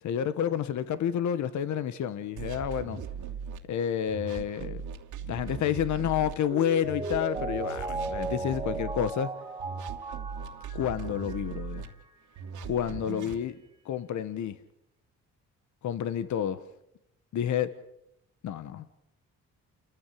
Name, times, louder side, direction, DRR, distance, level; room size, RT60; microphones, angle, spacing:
voice 1, 0.0-3.0 3.6-4.8 5.3-9.3 10.7-11.8 12.7-13.6 13.8-14.5 15.8-16.6 17.3-17.7 18.4-19.0, left 9 dB, 70° left, 13 dB, 1.3 m, -29 dB
sound 1, 2.4-3.6 4.1-6.3 6.8-9.1 9.6-11.9 12.4-13.4, right 7 dB, 80° right, 2.8 m, -39 dB
Mallet percussion, 6.5-12.0 12.4-12.5, right 2 dB, 15° right, 2.8 m, -37 dB
30.0 x 15.0 x 8.6 m, 0.85 s
cardioid pair, 90°, 30 cm